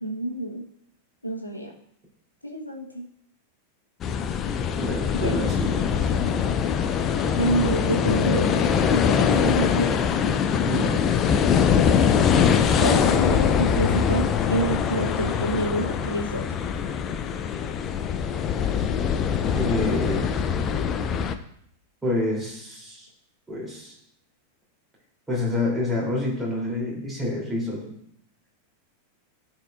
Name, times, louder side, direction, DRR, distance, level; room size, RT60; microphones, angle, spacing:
voice 1, 0.0-0.6 1.2-1.7 2.4-3.0 5.1-5.5 7.4-10.0 12.8-16.4, right 1 dB, 85° left, -1 dB, 1.3 m, -27 dB
sound 1, 4.0-21.3, left 7 dB, 30° left, 0.5 m, -23 dB
voice 2, 4.8-6.1 10.6-11.1 19.5-20.3 22.0-23.1 23.5-23.9 25.3-27.9, left 1 dB, 10° right, -4 dB, 3.1 m, -28 dB
12.5 x 4.4 x 2.5 m, 0.71 s
figure-of-eight pair, 90°, 0 cm